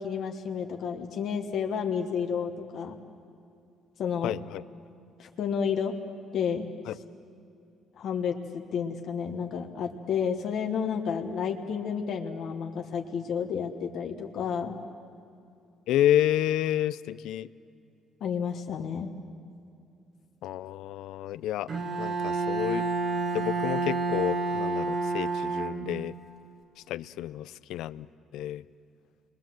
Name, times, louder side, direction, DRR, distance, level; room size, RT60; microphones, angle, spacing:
voice 1, 0.0-3.0 4.0-4.3 5.2-5.9 6.3-6.7 8.0-14.8 18.2-19.1, left 7 dB, 50° left, 3 dB, 1.5 m, -31 dB
voice 2, 4.2-4.6 6.9-7.0 15.9-17.5 20.4-21.7 22.0-22.9 23.3-26.2 26.9-28.1 28.3-28.6, left 12 dB, 80° left, 16 dB, 0.6 m, -29 dB
Bowed string instrument, 21.7-26.2, right 3 dB, 40° right, 1.9 m, -29 dB
29.0 x 22.5 x 7.7 m, 2.6 s
cardioid pair, 165°, 0 cm